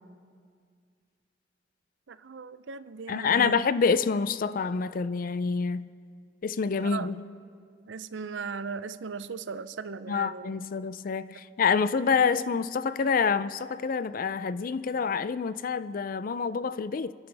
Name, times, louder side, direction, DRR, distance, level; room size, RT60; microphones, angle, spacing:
voice 1, 2.1-3.6 6.8-7.1 7.9-10.5, right 5 dB, 80° right, 0.5 m, -37 dB
voice 2, 3.1-5.9 6.4-7.2 10.1-17.1, left 5 dB, 50° left, 0.4 m, -27 dB
30.0 x 11.0 x 3.4 m
head